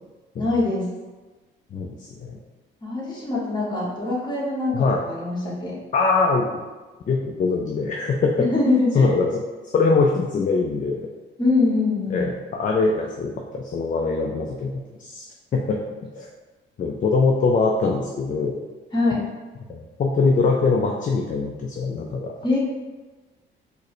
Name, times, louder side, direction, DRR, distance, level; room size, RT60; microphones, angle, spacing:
voice 1, 0.4-0.9 2.8-5.7 8.4-9.1 11.4-12.3 18.9-19.2 22.4-22.6, left 3 dB, 20° left, -6 dB, 1.3 m, -23 dB
voice 2, 1.7-2.4 4.7-5.0 5.9-6.6 7.1-8.5 8.9-9.4 9.7-11.1 12.1-15.3 15.5-15.8 16.1-16.3 16.8-18.7 19.7-22.3, left 4 dB, 40° left, 0 dB, 0.4 m, -22 dB
4.5 x 2.1 x 3.1 m, 1.2 s
cardioid pair, 90°, 20 cm